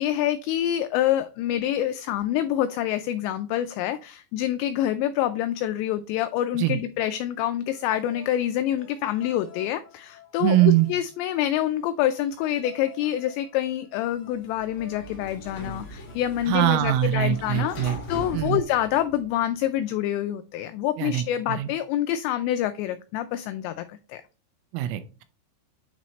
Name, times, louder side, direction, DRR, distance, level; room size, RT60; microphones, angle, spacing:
voice 1, 0.0-24.2, left 12 dB, 90° left, 10 dB, 2.5 m, -27 dB
sound 1, 7.7-18.8, left 4 dB, 25° left, 2.0 m, -51 dB
voice 2, 10.4-10.9 16.5-18.0 18.3-18.6 21.0-21.7 24.7-25.2, right 13 dB, 85° right, 11 dB, 3.3 m, -23 dB
Sliding door, 14.3-19.5, left 1 dB, 70° left, 1.3 m, -40 dB
9.5 x 4.1 x 3.1 m, 0.34 s
omnidirectional pair, 5.6 m